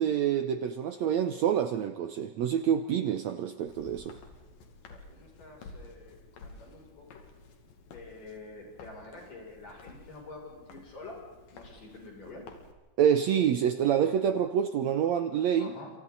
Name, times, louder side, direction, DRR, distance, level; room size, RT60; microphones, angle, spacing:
voice 1, 0.0-4.2 13.0-15.7, right 9 dB, 70° right, 9 dB, 1.8 m, -27 dB
Walk footsteps, 3.7-12.7, left 3 dB, 85° left, 4.1 m, -52 dB
voice 2, 4.9-7.2 7.9-11.2 11.5-12.5 15.6-15.9, left 3 dB, 65° left, -1 dB, 8.3 m, -47 dB
28.5 x 27.0 x 4.1 m, 1.2 s
omnidirectional pair, 4.0 m